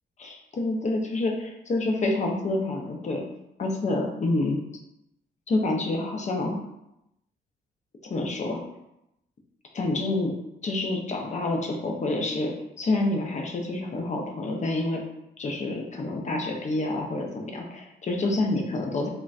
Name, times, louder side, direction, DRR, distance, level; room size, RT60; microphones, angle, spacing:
voice 1, 0.2-3.2 3.6-4.6 5.5-6.6 8.0-8.6 9.7-10.4 10.6-15.0 15.4-19.1, left 2 dB, 35° left, 1 dB, 0.5 m, -28 dB
3.8 x 2.2 x 2.4 m, 0.86 s
cardioid pair, 90°, 20 cm